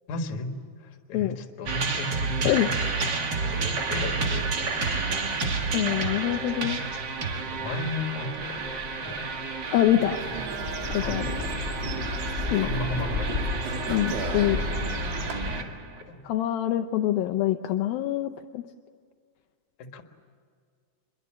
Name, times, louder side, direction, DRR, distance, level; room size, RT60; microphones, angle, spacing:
voice 1, 0.1-2.9 3.4-4.9 7.4-8.7 9.0-9.3 10.3-10.4 11.0-11.8 12.6-13.3 15.6-15.7 16.0-16.2 19.8-20.0, left 2 dB, 60° left, 5 dB, 2.8 m, -35 dB
sound 1, 1.7-16.0, right 4 dB, 40° right, 1.8 m, -31 dB
sound 2, 3.6-15.6, left 2 dB, 10° right, 4.5 m, -35 dB
voice 2, 5.7-6.8 9.7-10.2 10.9-11.3 12.5-12.7 13.9-14.6 16.2-18.6, left 13 dB, 80° left, 6 dB, 2.4 m, -25 dB
sound 3, 10.0-15.3, right 5 dB, 75° right, 4.0 m, -38 dB
27.0 x 22.0 x 7.6 m, 2.1 s
omnidirectional pair, 4.3 m